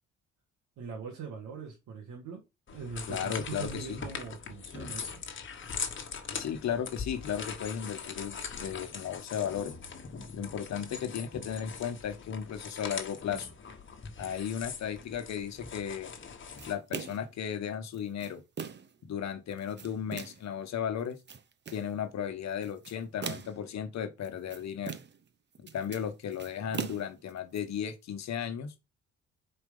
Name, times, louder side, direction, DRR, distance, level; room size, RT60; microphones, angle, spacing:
voice 1, 0.8-2.4 2.7-5.1, right 5 dB, 75° right, 1.9 m, -42 dB
sound 1, 2.7-16.7, left 6 dB, 40° left, 1.3 m, -41 dB
voice 2, 3.1-4.0 6.3-9.7 10.3-13.5 14.2-16.1 16.7-18.4 19.1-21.2 21.7-25.0 25.6-28.7, left 8 dB, 65° left, 1.1 m, -35 dB
sound 2, 16.6-17.3 17.9-19.0 19.5-20.5 21.0-21.9 22.6-23.7 24.2-25.3 25.5-27.6, right 7 dB, 35° right, 0.7 m, -41 dB
4.8 x 4.3 x 5.4 m
cardioid pair, 90°, 30 cm